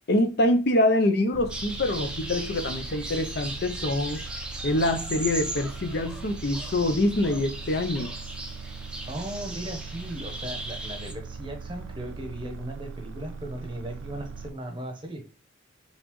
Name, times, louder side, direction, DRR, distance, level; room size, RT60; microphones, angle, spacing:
voice 1, 0.1-4.2 4.6-8.1, left 1 dB, 50° left, 0.6 m, -25 dB
sound 1, 1.3-14.5, right 4 dB, 75° right, 0.4 m, -40 dB
sound 2, 1.5-11.1, right 1 dB, 5° right, 0.6 m, -38 dB
voice 2, 9.1-15.2, right 1 dB, 25° right, 0.9 m, -37 dB
4.0 x 3.9 x 3.0 m
head